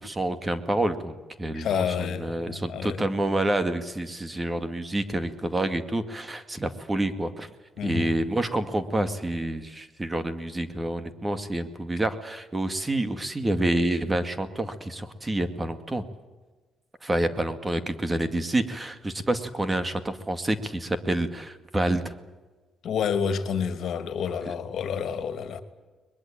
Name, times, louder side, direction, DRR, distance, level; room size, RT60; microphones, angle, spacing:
voice 1, 0.0-7.5 7.8-16.0 17.0-22.1 24.5-24.6, right 1 dB, 20° right, 2.1 m, -28 dB
voice 2, 1.5-3.0 7.8-8.2 22.8-25.6, left 7 dB, 65° left, 2.4 m, -29 dB
22.0 x 21.5 x 8.8 m
cardioid pair, 90°, 0 cm